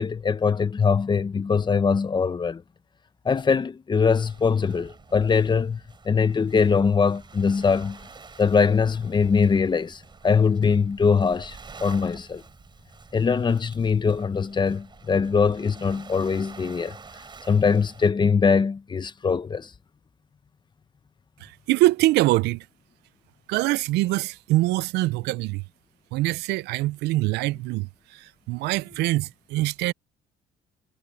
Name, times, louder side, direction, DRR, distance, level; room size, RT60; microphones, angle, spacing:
voice 1, 0.0-2.6 3.2-5.8 6.0-8.0 8.4-12.4 13.1-17.0 17.5-19.7, left 5 dB, 25° left, 1.0 m, -22 dB
Waves surf, 4.1-18.1, right 5 dB, 25° right, 4.1 m, -48 dB
voice 2, 21.4-22.7 23.5-25.6 26.1-29.9, right 18 dB, 85° right, 0.5 m, -24 dB
cardioid pair, 110°, 17 cm